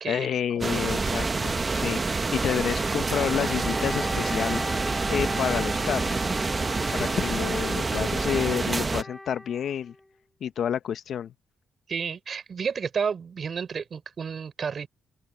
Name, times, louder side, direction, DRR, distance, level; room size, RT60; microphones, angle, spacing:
voice 1, 0.1-4.6 5.1-6.2 6.9-9.9 10.4-11.3, left 9 dB, 65° left, 0.9 m, -29 dB
sound 1, 0.6-9.0, right 3 dB, 30° right, 1.4 m, -27 dB
Wind instrument woodwind instrument, 2.6-10.1, left 1 dB, 10° left, 2.1 m, -38 dB
voice 2, 11.9-14.9, right 6 dB, 45° right, 6.2 m, -31 dB
cardioid pair, 90°, 0 cm